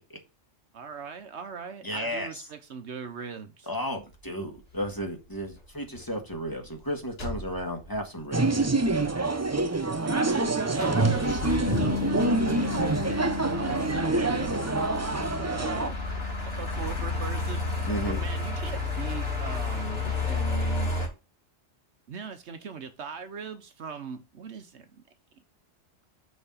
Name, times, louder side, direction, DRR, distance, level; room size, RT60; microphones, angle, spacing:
voice 1, 0.7-3.7 10.0-14.6 15.3-17.6 18.1-20.9 22.1-25.0, right 6 dB, 65° right, 1.1 m, -40 dB
voice 2, 1.8-2.4 3.7-8.6 17.9-18.2, equal, 15° left, 1.7 m, -33 dB
sound 1, 4.7-5.0 5.4-5.6 5.9-6.0 6.3-6.8 7.2-7.9 8.3-8.4 8.6-9.1 9.5-10.4 10.7-21.1, left 3 dB, 55° left, 2.9 m, -32 dB
sound 2, 8.3-15.9, right 2 dB, 20° right, 0.4 m, -26 dB
Bass guitar, 11.7-17.9, left 9 dB, 70° left, 1.2 m, -36 dB
6.8 x 4.5 x 5.5 m
omnidirectional pair, 1.2 m